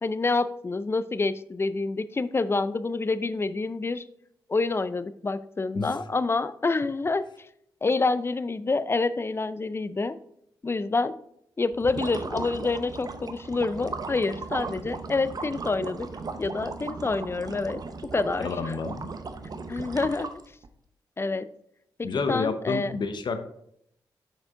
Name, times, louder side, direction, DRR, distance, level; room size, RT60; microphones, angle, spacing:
voice 1, 0.0-4.0 4.5-7.2 7.8-10.2 10.6-11.1 11.6-16.1 16.4-17.8 18.1-18.8 19.7-20.3 21.2-21.5 22.0-22.9, left 3 dB, 30° left, 15 dB, 0.4 m, -27 dB
sound 1, 11.7-20.7, right 4 dB, 45° right, 0.7 m, -37 dB
voice 2, 18.4-19.1 22.0-23.4, left 4 dB, 60° left, 9 dB, 0.8 m, -29 dB
6.0 x 5.1 x 3.7 m, 0.72 s
supercardioid pair, 45°, 9 cm